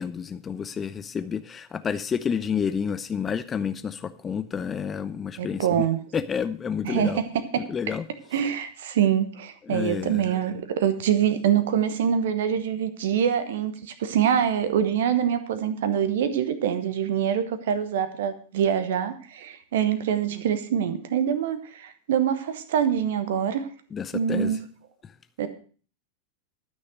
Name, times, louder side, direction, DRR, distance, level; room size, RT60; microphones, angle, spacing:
voice 1, 0.0-5.7 6.1-7.2 7.7-8.0 9.7-10.2 23.9-24.5, left 7 dB, 20° left, 13 dB, 0.5 m, -29 dB
voice 2, 5.4-6.0 6.8-7.7 8.3-23.7 24.1-24.6 25.4-25.5, right 9 dB, 55° right, 11 dB, 1.1 m, -25 dB
12.5 x 6.4 x 6.3 m, 0.41 s
figure-of-eight pair, 90°, 0 cm